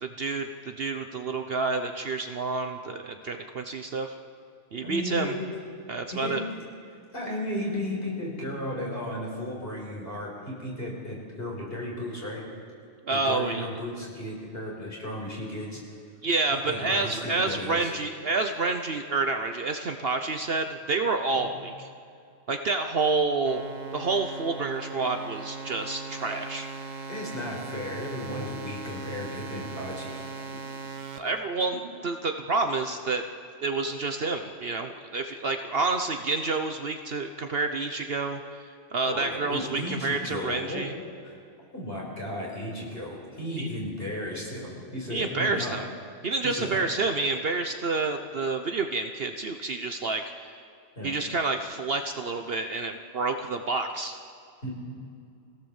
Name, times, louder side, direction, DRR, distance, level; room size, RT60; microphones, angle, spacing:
voice 1, 0.0-4.2 4.7-5.4 5.9-6.4 13.0-13.7 16.2-21.9 22.5-23.6 23.9-26.7 31.1-33.2 33.6-38.6 38.9-40.9 43.6-43.7 45.1-45.9 46.2-50.5 51.0-54.1, right 3 dB, 50° right, 6 dB, 1.0 m, -29 dB
voice 2, 4.8-5.4 6.1-6.6 7.1-12.4 13.1-15.8 16.5-17.9 27.1-30.4 39.0-40.9 41.2-41.4 41.7-45.8 46.4-46.8 51.0-51.1 54.6-54.7, left 1 dB, 45° left, -3 dB, 5.7 m, -34 dB
sound 1, 23.5-31.2, right 4 dB, 75° right, 1.6 m, -39 dB
24.0 x 17.0 x 7.2 m, 2.4 s
omnidirectional pair, 1.3 m